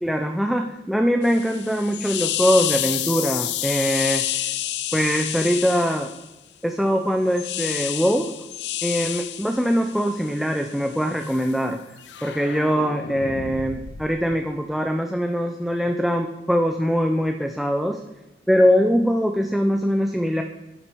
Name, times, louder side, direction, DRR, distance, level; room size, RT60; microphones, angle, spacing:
voice 1, 0.0-4.5 4.9-6.1 6.6-8.3 8.8-11.8 12.2-18.0 18.5-20.4, equal, ahead, 3 dB, 0.3 m, -22 dB
sound 1, 1.2-6.3 7.3-11.5 12.0-14.4, left 12 dB, 85° left, 0.5 m, -30 dB
12.0 x 5.9 x 3.5 m, 1.0 s
head